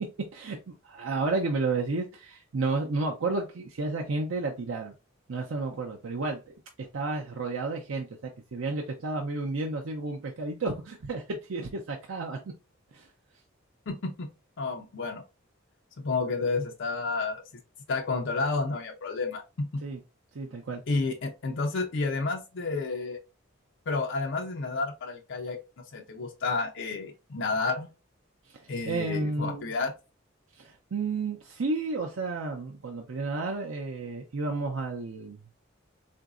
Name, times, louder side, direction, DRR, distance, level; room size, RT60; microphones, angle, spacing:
voice 1, 0.3-4.9 5.3-12.4 12.9-13.1 19.8-20.0 20.3-20.8 28.5-29.7 30.6-35.5, right 3 dB, 85° right, 1 dB, 0.6 m, -32 dB
voice 2, 13.9-14.3 14.6-15.2 16.0-17.4 17.9-19.8 20.9-23.2 23.9-25.6 25.9-27.9 28.7-29.9, left 3 dB, 60° left, 1 dB, 0.5 m, -30 dB
3.9 x 2.6 x 2.4 m, 0.28 s
head